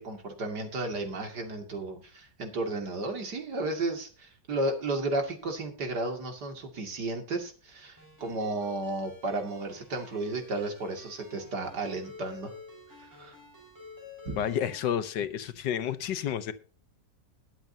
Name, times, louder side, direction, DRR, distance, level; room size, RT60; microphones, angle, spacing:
voice 1, 0.0-12.5 13.0-13.4 14.2-14.4, right 2 dB, 65° right, 4 dB, 3.0 m, -33 dB
Ringtone, 8.0-14.8, left 2 dB, 10° right, 6.7 m, -50 dB
voice 2, 14.4-16.5, left 9 dB, 75° left, 12 dB, 1.6 m, -30 dB
21.0 x 7.9 x 2.8 m, 0.39 s
omnidirectional pair, 1.9 m